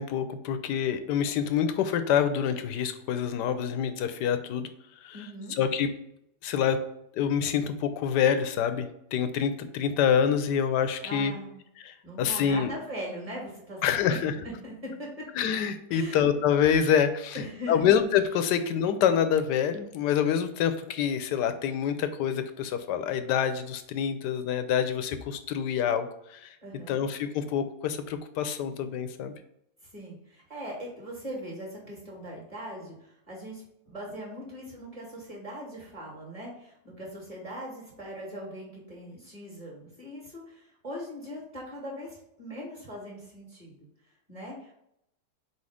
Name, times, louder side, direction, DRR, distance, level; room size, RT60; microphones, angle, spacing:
voice 1, 0.0-4.7 5.0-5.2 5.6-5.9 6.4-6.8 7.1-11.3 11.8-12.7 13.8-14.3 15.4-26.6 26.9-29.3, left 8 dB, 85° left, 10 dB, 1.2 m, -26 dB
voice 2, 5.1-5.6 11.0-11.6 12.0-15.1 15.9-16.3 17.3-18.0 26.6-27.0 29.8-43.7 44.3-44.7, equal, 20° right, -2 dB, 1.9 m, -40 dB
4.6 x 4.2 x 4.9 m, 0.78 s
omnidirectional pair, 1.8 m